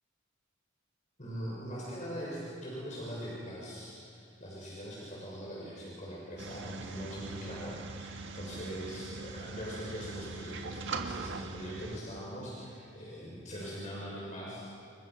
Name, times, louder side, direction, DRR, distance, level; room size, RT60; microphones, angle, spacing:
voice 1, 1.2-14.7, equal, 40° left, -5 dB, 7.0 m, -42 dB
sound 1, 6.4-12.0, right 4 dB, 65° right, 1.7 m, -41 dB
29.5 x 29.0 x 6.2 m, 2.4 s
head